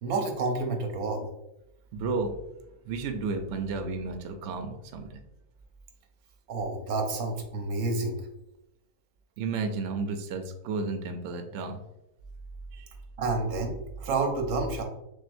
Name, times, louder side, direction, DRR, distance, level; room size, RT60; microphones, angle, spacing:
voice 1, 0.0-1.3 6.5-8.2 13.2-14.8, right 3 dB, 85° right, 3 dB, 1.2 m, -29 dB
voice 2, 1.9-2.4 2.9-5.2 9.4-11.8 12.7-12.9, right 4 dB, 65° right, 6 dB, 0.8 m, -32 dB
6.2 x 2.2 x 2.5 m, 0.89 s
omnidirectional pair, 1.5 m